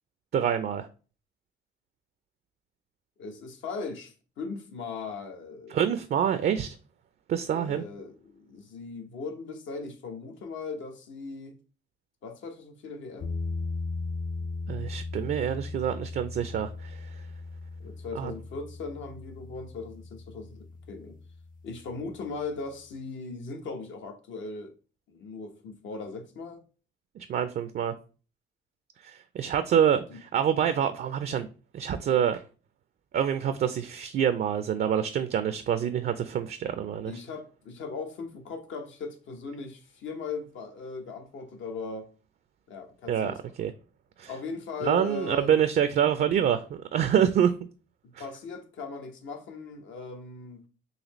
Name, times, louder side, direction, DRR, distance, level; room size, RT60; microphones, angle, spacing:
voice 1, 0.3-0.9 5.7-6.8 7.3-7.8 14.7-17.2 18.1-18.3 27.2-27.9 29.0-31.5 31.7-32.4 33.1-37.1 43.1-43.7 44.2-44.3 44.8-47.5 48.2-48.3, right 9 dB, 50° right, 0.4 m, -26 dB
voice 2, 3.2-5.8 7.5-11.6 12.2-13.3 17.8-21.2 21.6-24.7 25.1-26.6 30.1-30.2 37.0-42.1 42.7-43.4 44.3-45.6 48.0-50.7, left 4 dB, 70° left, 0.9 m, -39 dB
sound 1, 13.2-22.1, left 3 dB, 45° left, 0.6 m, -38 dB
4.1 x 2.7 x 3.0 m
cardioid pair, 90°, 20 cm